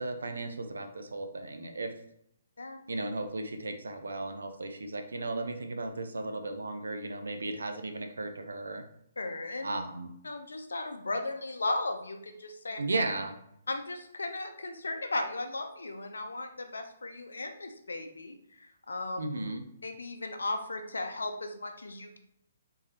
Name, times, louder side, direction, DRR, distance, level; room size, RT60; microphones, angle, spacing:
voice 1, 0.0-1.9 2.9-8.8 9.6-10.1 12.8-13.4 19.2-19.6, right 2 dB, 75° right, 6 dB, 0.5 m, -35 dB
voice 2, 9.2-9.7 10.2-12.8 13.7-19.2 19.8-22.2, left 2 dB, 75° left, 6 dB, 0.5 m, -36 dB
3.6 x 2.8 x 3.2 m, 0.74 s
figure-of-eight pair, 130°, 0 cm